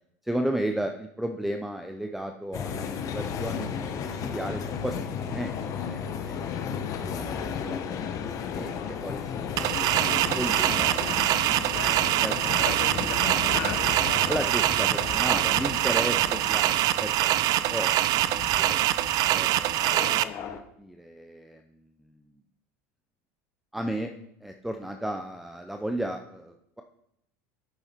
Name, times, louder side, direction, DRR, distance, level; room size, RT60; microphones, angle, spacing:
voice 1, 0.2-6.4 6.9-8.1 8.5-8.7 9.0-9.7 10.0-12.3 14.3-18.8 19.3-21.7 22.0-22.2 23.7-24.1 24.4-26.8, right 1 dB, 5° right, 5 dB, 0.6 m, -35 dB
sound 1, 2.5-20.6, left 7 dB, 45° left, 1.0 m, -34 dB
voice 2, 8.6-9.3 11.4-14.3 14.8-14.9 15.2-15.4, left 6 dB, 70° left, 1 dB, 2.5 m, -39 dB
sound 2, 9.6-20.2, right 14 dB, 50° right, 0.4 m, -24 dB
8.8 x 6.9 x 4.5 m, 0.76 s
supercardioid pair, 100°, 8 cm